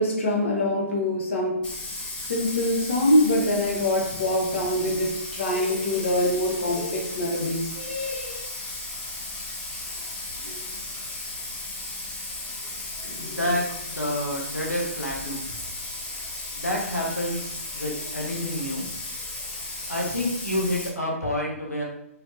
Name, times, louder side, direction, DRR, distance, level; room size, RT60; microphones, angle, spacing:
voice 1, 0.0-1.9 2.3-8.5 10.4-10.6 13.0-13.4, left 1 dB, 55° left, -1 dB, 0.8 m, -25 dB
Bathtub (filling or washing), 1.6-20.9, left 2 dB, 10° left, 0.6 m, -35 dB
voice 2, 13.2-15.6 16.6-18.9 19.9-21.8, left 1 dB, 90° left, -2 dB, 0.8 m, -29 dB
3.3 x 2.8 x 2.4 m, 0.77 s
figure-of-eight pair, 125°, 8 cm